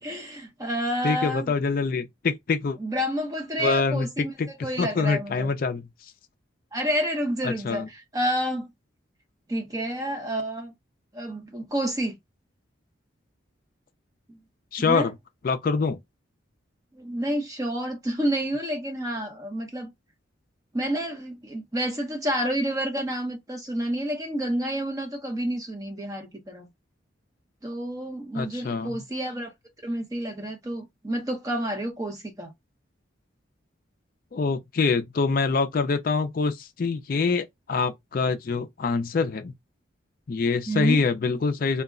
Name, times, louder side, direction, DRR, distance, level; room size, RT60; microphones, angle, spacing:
voice 1, 0.0-1.5 2.8-4.3 4.6-5.5 6.7-8.7 9.5-10.7 11.1-12.2 14.3-14.4 14.8-15.1 16.9-19.9 20.7-26.7 27.6-29.5 29.8-32.5 40.7-41.0, equal, 20° right, 0.6 m, -29 dB
voice 2, 1.0-2.8 3.6-4.1 4.4-4.5 4.8-5.9 7.4-7.9 14.7-15.1 15.4-16.0 28.3-29.0 34.3-39.5 40.3-41.8, left 4 dB, 45° left, 0.4 m, -25 dB
2.2 x 2.1 x 3.5 m
head